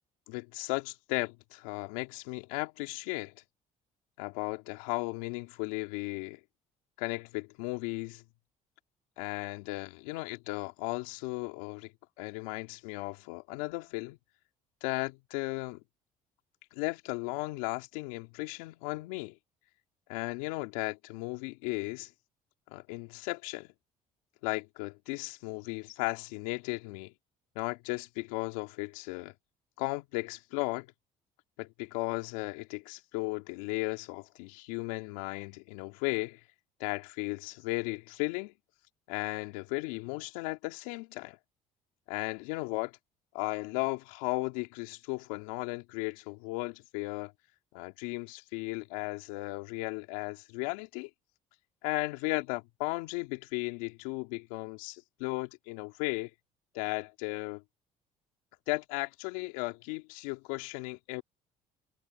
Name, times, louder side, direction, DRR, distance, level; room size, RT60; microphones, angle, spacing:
voice 1, 0.3-3.3 4.2-6.4 7.0-8.2 9.2-11.9 12.2-14.2 14.8-15.8 16.7-19.3 20.1-22.1 22.7-23.7 24.4-27.1 27.5-29.3 29.8-30.9 31.6-36.4 36.8-38.5 39.1-41.4 42.1-42.9 43.3-47.3 47.7-51.1 51.8-56.3 56.7-57.6 58.7-61.2, left 25 dB, 85° left, 3.2 m, -35 dB
hypercardioid pair, 65°, 18 cm